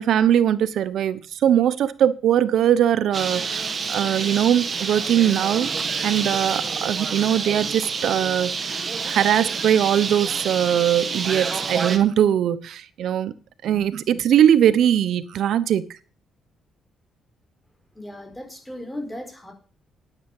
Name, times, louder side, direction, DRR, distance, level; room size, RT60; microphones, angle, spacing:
voice 1, 0.0-5.7 6.0-8.7 9.1-13.3 13.6-15.8, right 10 dB, 70° right, 1.0 m, -20 dB
Bird, 3.1-12.0, right 5 dB, 40° right, 1.8 m, -28 dB
voice 2, 17.9-19.5, left 1 dB, 10° left, 4.5 m, -36 dB
9.5 x 9.2 x 7.2 m
cardioid pair, 90°, 0 cm